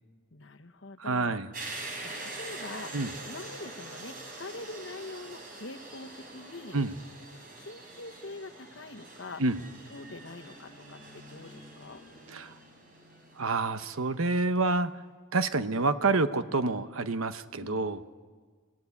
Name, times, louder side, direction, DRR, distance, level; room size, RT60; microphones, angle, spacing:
voice 1, 0.3-1.4 2.0-3.0 3.2-6.8 7.6-9.4 9.9-12.0 17.6-17.9, left 2 dB, 65° left, 6 dB, 1.2 m, -44 dB
voice 2, 1.0-1.5 2.9-3.1 6.7-6.9 9.4-9.6 12.3-12.5 13.4-14.9 15.3-18.0, right 3 dB, 85° right, 11 dB, 1.0 m, -28 dB
sound 1, 1.5-14.2, right 2 dB, 45° right, 4.1 m, -44 dB
30.0 x 17.0 x 8.6 m, 1.5 s
head